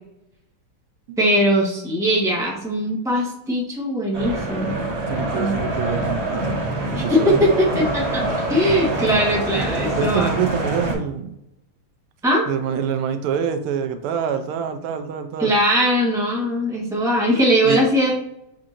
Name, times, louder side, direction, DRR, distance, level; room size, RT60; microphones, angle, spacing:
voice 1, 1.2-4.8 5.3-5.5 6.9-8.2 8.5-10.3 12.2-12.5 15.4-18.1, equal, ahead, -3 dB, 0.7 m, -20 dB
sound 1, 4.1-10.9, right 1 dB, 45° right, 1.0 m, -25 dB
voice 2, 5.1-6.6 7.0-7.4 9.9-11.4 12.5-15.6 17.6-17.8, right 7 dB, 85° right, 7 dB, 1.5 m, -25 dB
7.1 x 2.8 x 2.5 m, 0.82 s
omnidirectional pair, 2.4 m